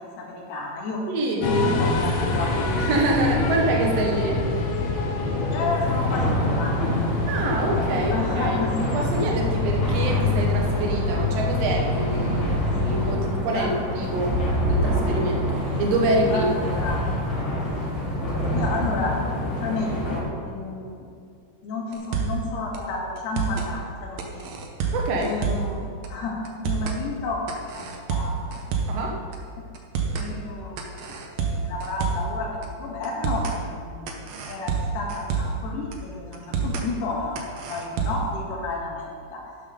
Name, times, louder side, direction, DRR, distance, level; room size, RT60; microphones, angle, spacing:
voice 1, 0.0-1.0 1.4-2.5 3.5-3.6 5.5-7.1 8.1-8.9 13.6-13.7 16.3-17.1 18.5-21.1 21.6-24.5 24.8-24.9 25.2-27.4 27.7-28.6 30.1-34.2 34.5-39.5, left 3 dB, 80° left, -2 dB, 3.8 m, -31 dB
voice 2, 1.1-1.4 2.8-4.4 7.3-8.6 8.9-12.5 12.8-14.4 14.7-16.5 24.9-25.3 28.9-29.2, right 2 dB, 60° right, 0 dB, 1.9 m, -26 dB
sound 1, 1.4-13.2, left 2 dB, 60° left, 2.0 m, -26 dB
sound 2, 5.8-20.2, equal, 40° left, 3.7 m, -27 dB
sound 3, 21.9-22.5 22.7-22.8 23.2-23.7 24.2-25.8 26.0-26.1 26.5-27.0 27.5-29.0 29.3-29.4 29.7-30.3 30.8-32.3 32.6-32.7 33.0-33.6 34.1-35.6 35.9-36.0 36.3-36.9 37.4-38.3, right 5 dB, 80° right, 1.5 m, -28 dB
12.0 x 9.7 x 3.8 m, 2.3 s
omnidirectional pair, 4.6 m